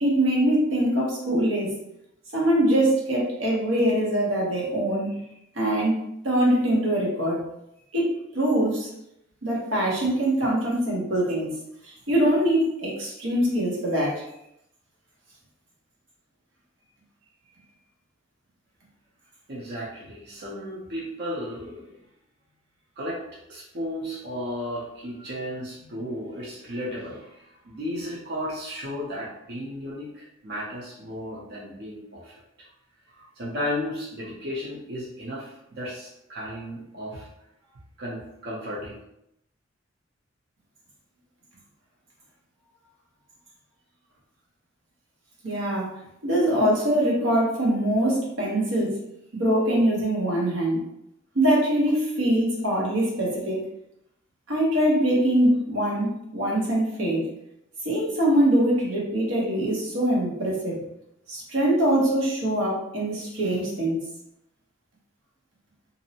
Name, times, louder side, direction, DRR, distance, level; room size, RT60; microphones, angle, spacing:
voice 1, 0.0-1.8 2.3-5.1 5.5-7.4 7.9-8.9 9.4-11.6 11.8-14.2 45.4-46.0 46.2-49.0 49.3-50.8 51.3-53.6 54.5-57.3 57.8-60.8 61.3-64.0, right 1 dB, 90° right, -4 dB, 0.9 m, -23 dB
voice 2, 19.5-21.9 23.0-23.2 23.5-32.4 33.1-37.3 38.0-39.0, left 1 dB, 55° right, -6 dB, 0.6 m, -34 dB
2.6 x 2.0 x 2.7 m, 0.80 s
head